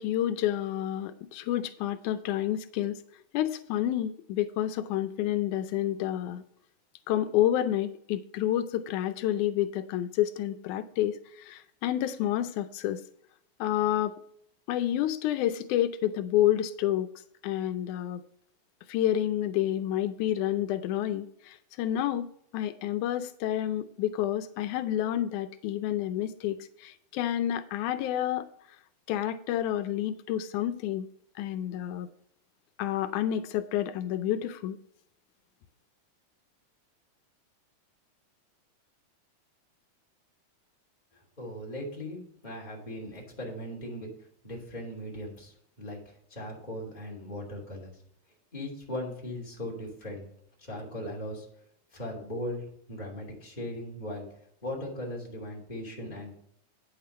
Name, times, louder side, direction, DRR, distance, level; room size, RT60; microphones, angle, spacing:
voice 1, 0.0-3.0 3.3-6.4 7.1-13.0 13.6-14.2 14.7-17.1 17.4-18.2 18.9-22.3 22.5-28.5 29.1-31.1 31.4-32.1 32.8-34.8, left 12 dB, 85° left, 10 dB, 2.1 m, -29 dB
voice 2, 41.4-44.1 44.4-47.9 48.5-50.3 50.6-51.5 51.9-54.3 54.6-56.4, left 1 dB, 15° left, -3 dB, 2.8 m, -38 dB
9.3 x 7.0 x 4.2 m, 0.70 s
omnidirectional pair, 3.4 m